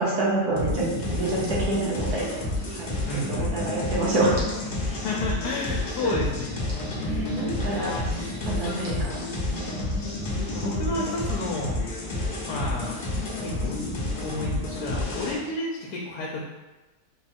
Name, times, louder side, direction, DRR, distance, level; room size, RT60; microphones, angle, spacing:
voice 1, 0.0-2.2 2.7-4.4 6.0-6.1 7.1-9.8, right 2 dB, 75° right, -6 dB, 1.4 m, -28 dB
sound 1, 0.6-15.3, left 2 dB, 45° left, 0.7 m, -30 dB
voice 2, 3.1-3.7 5.0-6.7 7.0-8.0 8.4-9.2 10.5-11.8 12.5-13.0 13.4-13.9 14.2-16.4, left 2 dB, 80° left, -2 dB, 1.1 m, -32 dB
3.6 x 2.3 x 4.2 m, 1.1 s
omnidirectional pair, 1.7 m